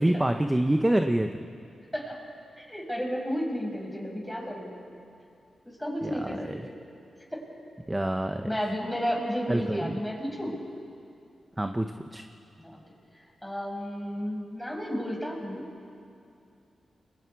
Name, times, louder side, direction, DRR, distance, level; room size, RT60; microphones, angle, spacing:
voice 1, 0.0-1.4 6.0-6.6 7.9-8.5 9.5-10.0 11.6-12.2, right 1 dB, 15° right, 6 dB, 1.0 m, -26 dB
voice 2, 2.7-4.7 5.8-6.7 7.3-7.4 8.4-10.6 12.6-12.8 13.2-15.7, equal, 5° left, -1 dB, 6.2 m, -32 dB
29.5 x 23.0 x 4.8 m, 2.5 s
cardioid pair, 60°, 0 cm